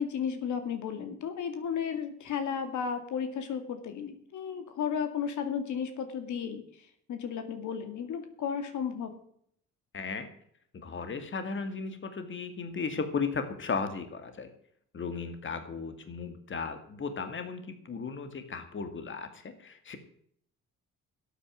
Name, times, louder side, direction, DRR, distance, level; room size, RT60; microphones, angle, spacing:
voice 1, 0.0-9.1, left 7 dB, 75° left, 8 dB, 2.4 m, -34 dB
voice 2, 9.9-10.3 10.7-14.5 14.9-20.0, left 5 dB, 40° left, 8 dB, 2.2 m, -35 dB
12.5 x 9.1 x 7.5 m, 0.66 s
cardioid pair, 90°, 30 cm